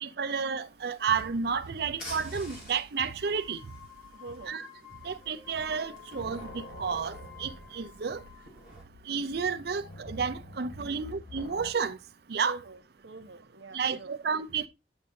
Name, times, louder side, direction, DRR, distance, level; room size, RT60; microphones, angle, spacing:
voice 1, 0.0-3.6 4.5-4.7 5.0-8.2 9.1-12.0 12.3-12.6 13.7-14.7, right 6 dB, 60° right, 0.5 m, -31 dB
sound 1, 0.6-8.8, left 1 dB, 50° left, 3.2 m, -51 dB
sound 2, 2.2-2.6 3.0-8.6, left 12 dB, ahead, 2.8 m, -52 dB
voice 2, 4.1-4.6 10.8-10.9 12.4-14.1, right 2 dB, 85° right, 0.9 m, -45 dB
sound 3, 5.1-5.5 5.8-11.7, left 2 dB, 90° left, 1.8 m, -48 dB
8.1 x 6.3 x 2.5 m
head